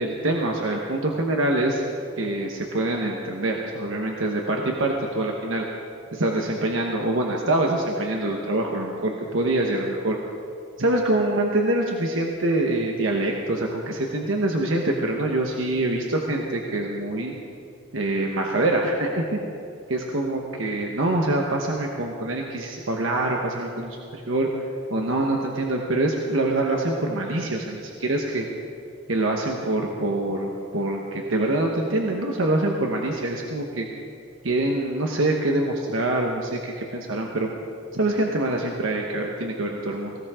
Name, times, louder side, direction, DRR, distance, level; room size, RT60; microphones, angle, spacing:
voice 1, 0.0-1.8 2.2-5.7 6.1-10.2 10.8-17.3 17.9-19.4 19.9-24.5 24.9-28.5 29.1-33.9 34.4-37.5 37.9-40.2, right 2 dB, 70° right, 0 dB, 1.2 m, -25 dB
18.5 x 18.0 x 3.7 m, 2.6 s
head